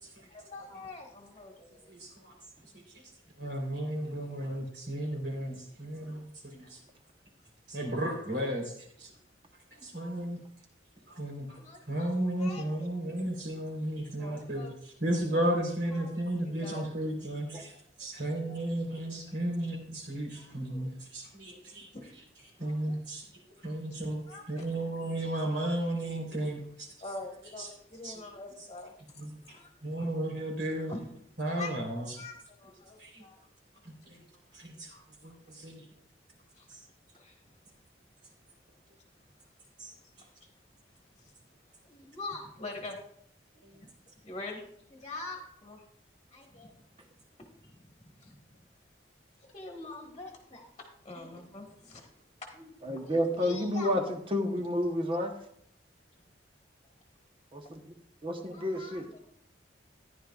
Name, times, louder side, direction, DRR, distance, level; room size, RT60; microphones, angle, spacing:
voice 1, 0.2-1.9 11.6-12.1 12.4-12.9 14.1-14.7 15.9-16.1 16.4-16.8 18.1-18.6 20.3-20.4 20.7-20.9 21.9-22.1 22.9-23.0 23.6-24.0 24.3-24.7 27.0-28.9 29.5-29.7 30.0-30.1 30.9-31.0 31.5-31.8 32.1-33.4 36.6-36.7 37.1-37.6 40.0-40.3 41.2-41.3 41.8-43.0 43.7-43.9 44.2-44.6 44.9-45.8 46.3-46.8 47.4-48.6 49.5-52.0 52.4-53.9 58.5-59.2, left 2 dB, 30° left, 1 dB, 1.4 m, -45 dB
voice 2, 1.9-2.3 2.7-2.8 3.4-6.8 7.7-9.1 9.7-10.4 11.1-11.6 11.9-14.7 15.0-21.9 22.6-23.2 23.6-26.9 27.6-27.7 28.0-28.2 29.2-29.4 29.8-30.9 31.4-32.2 33.0-33.2 33.8-34.2 34.5-35.8 36.7-36.8 39.8-39.9 43.6-43.7, right 1 dB, 65° right, 0 dB, 3.5 m, -34 dB
voice 3, 52.8-54.0 54.3-55.4 57.5-57.9 58.2-59.1, left 1 dB, 30° right, 4 dB, 0.9 m, -30 dB
14.5 x 10.5 x 2.4 m, 0.70 s
head